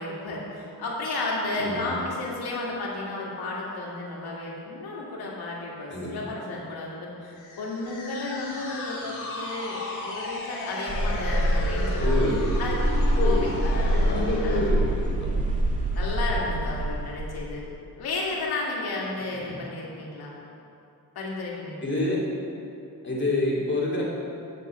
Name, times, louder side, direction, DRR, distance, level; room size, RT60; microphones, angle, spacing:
voice 1, 0.0-12.1 12.6-12.8 13.2-14.0 14.4-14.6 15.9-17.7 18.0-20.4 21.1-21.8, left 2 dB, 85° left, -4 dB, 2.4 m, -33 dB
voice 2, 1.6-2.0 5.9-6.2 12.0-12.4 13.2-13.5 13.9-15.3 19.4-19.6 21.8-22.2 23.0-24.0, left 2 dB, 30° left, -4 dB, 2.5 m, -27 dB
sound 1, 7.4-14.8, left 1 dB, 60° left, 2.1 m, -35 dB
sound 2, 10.9-17.5, right 1 dB, 20° right, 1.7 m, -25 dB
8.3 x 6.7 x 7.0 m, 2.7 s
cardioid pair, 105°, 36 cm